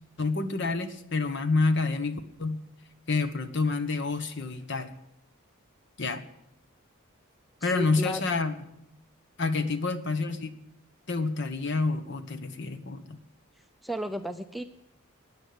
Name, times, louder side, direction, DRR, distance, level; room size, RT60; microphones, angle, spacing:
voice 1, 0.2-2.6 3.1-4.9 6.0-6.2 7.6-8.5 9.4-10.5 11.1-13.2, left 3 dB, 55° left, 10 dB, 1.3 m, -28 dB
voice 2, 7.6-8.2 9.4-9.7 13.8-14.6, left 1 dB, ahead, 7 dB, 0.5 m, -34 dB
15.0 x 9.8 x 9.4 m, 0.80 s
head